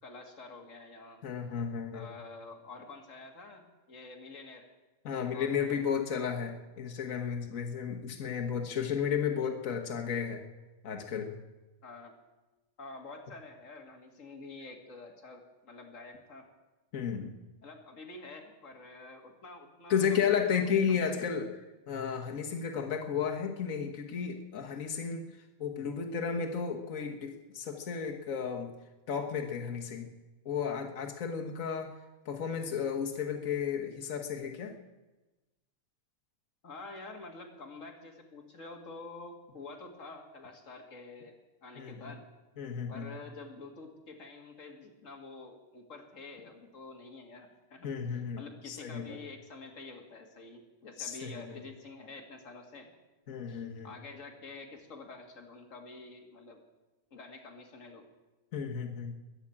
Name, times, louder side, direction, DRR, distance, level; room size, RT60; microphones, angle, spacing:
voice 1, 0.0-1.2 1.9-4.7 5.3-5.9 11.8-12.1 12.8-16.5 17.6-21.3 36.6-41.3 41.6-42.2 42.9-47.9 48.3-52.9 53.5-56.6 57.1-58.1, left 3 dB, 30° left, 2 dB, 2.0 m, -48 dB
voice 2, 1.2-2.1 5.0-10.4 10.8-11.3 16.9-17.3 19.9-21.5 21.9-25.2 25.6-28.7 29.1-30.1 30.4-31.9 32.2-34.8 41.8-41.9 42.6-43.1 47.8-49.2 51.0-51.6 53.3-53.9 58.5-59.1, left 7 dB, 75° left, 2 dB, 0.7 m, -33 dB
21.5 x 7.4 x 8.6 m, 1.1 s
omnidirectional pair, 3.4 m